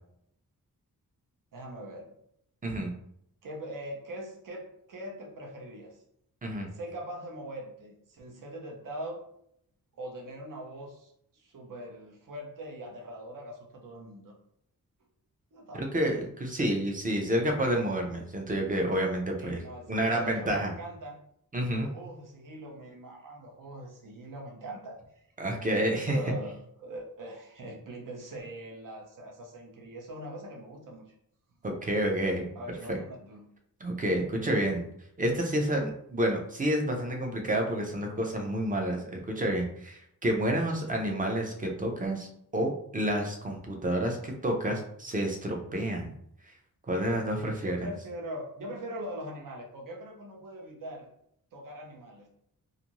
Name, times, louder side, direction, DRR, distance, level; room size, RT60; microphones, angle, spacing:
voice 1, 1.5-2.1 3.4-6.0 6.7-9.2 9.9-14.3 15.5-15.8 19.4-21.2 21.8-25.0 25.9-26.5 26.8-31.1 32.5-33.5 47.6-51.1 51.5-52.3, right 1 dB, 65° right, 0 dB, 0.7 m, -42 dB
voice 2, 2.6-2.9 6.4-6.7 15.7-19.6 19.9-20.7 21.5-21.9 25.4-26.2 31.6-32.4 32.9-33.0 33.8-34.9 35.2-42.3 42.5-46.1 46.9-47.9, right 1 dB, 25° right, 1 dB, 0.5 m, -29 dB
2.6 x 2.4 x 2.9 m, 0.72 s
wide cardioid pair, 145°, 35 cm